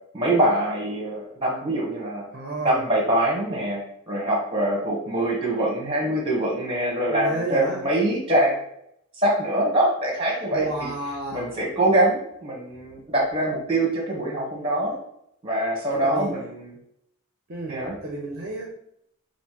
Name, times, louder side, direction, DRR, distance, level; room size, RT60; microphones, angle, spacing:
voice 1, 0.1-2.3 2.6-8.6 9.2-10.9 11.3-15.0 15.4-16.7 17.7-17.9, right 1 dB, 25° right, -1 dB, 1.1 m, -24 dB
voice 2, 2.3-2.9 7.1-7.9 10.5-11.6 15.9-16.4 17.5-18.7, right 2 dB, 45° right, -1 dB, 0.6 m, -31 dB
5.3 x 2.6 x 2.9 m, 0.73 s
head